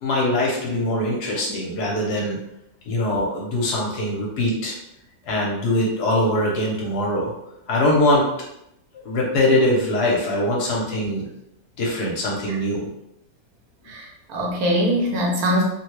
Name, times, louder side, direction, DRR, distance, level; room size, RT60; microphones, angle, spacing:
voice 1, 0.0-2.4 2.9-4.7 5.3-7.3 7.7-8.2 8.9-11.2 11.8-12.9, left 1 dB, 65° left, -3 dB, 1.2 m, -22 dB
voice 2, 13.9-15.6, equal, 65° right, -1 dB, 1.0 m, -22 dB
3.4 x 2.2 x 3.0 m, 0.80 s
omnidirectional pair, 2.0 m